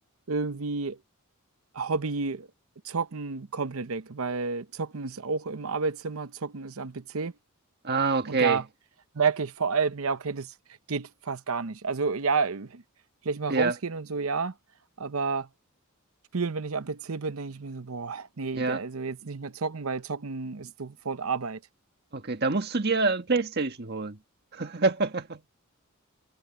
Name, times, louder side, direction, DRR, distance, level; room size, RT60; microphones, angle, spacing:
voice 1, 0.3-1.0 1.7-2.5 2.8-7.3 8.2-8.6 9.1-10.5 10.9-12.8 13.2-14.5 15.0-15.5 16.3-21.6, right 4 dB, 75° right, 0.8 m, -30 dB
voice 2, 7.8-8.6 13.5-13.8 18.6-18.8 22.1-24.2 24.5-25.4, right 3 dB, 50° right, 1.7 m, -26 dB
head